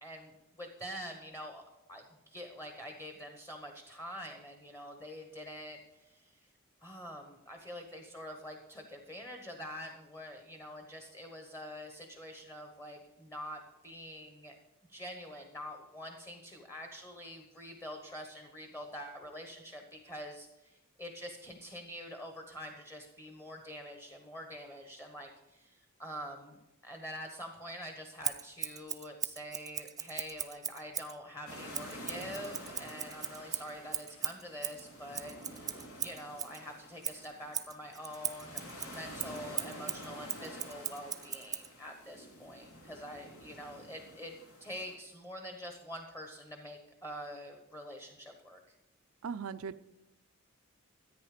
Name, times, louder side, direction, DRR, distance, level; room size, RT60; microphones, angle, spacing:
voice 1, 0.0-1.6 1.9-6.5 6.8-14.6 14.9-26.6 26.8-44.3 44.6-48.6, equal, 15° left, 3 dB, 1.2 m, -46 dB
Scissors, 28.2-31.2 31.7-36.6 37.0-41.7, right 8 dB, 15° right, 0.4 m, -39 dB
sound 1, 31.5-45.0, equal, 80° left, 2.9 m, -49 dB
voice 2, 49.2-49.8, right 6 dB, 70° right, 13 dB, 0.5 m, -39 dB
13.5 x 9.1 x 5.1 m, 0.96 s
head